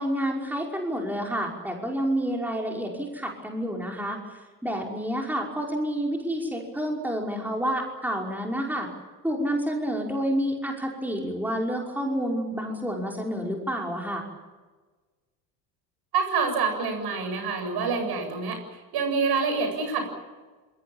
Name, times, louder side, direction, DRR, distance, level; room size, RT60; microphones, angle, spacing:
voice 1, 0.0-8.9 9.2-14.3, equal, 5° right, 0 dB, 5.4 m, -29 dB
voice 2, 16.1-20.1, right 5 dB, 50° right, 6 dB, 8.0 m, -27 dB
27.0 x 23.5 x 7.3 m, 1.3 s
hypercardioid pair, 65°, 49 cm